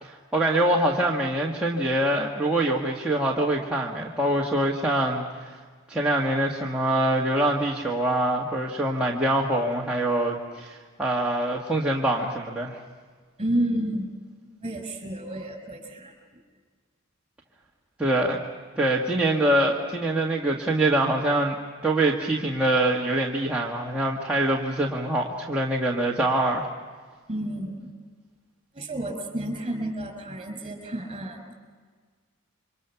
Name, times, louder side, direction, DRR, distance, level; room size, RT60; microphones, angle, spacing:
voice 1, 0.0-5.5 5.9-12.8 18.0-18.4 18.8-21.6 21.8-26.7, right 1 dB, 5° right, -5 dB, 1.9 m, -24 dB
voice 2, 13.4-14.1 14.6-16.1 27.3-27.9 28.7-31.6, right 1 dB, 25° right, 6 dB, 5.8 m, -30 dB
28.5 x 25.0 x 6.0 m, 1.5 s
head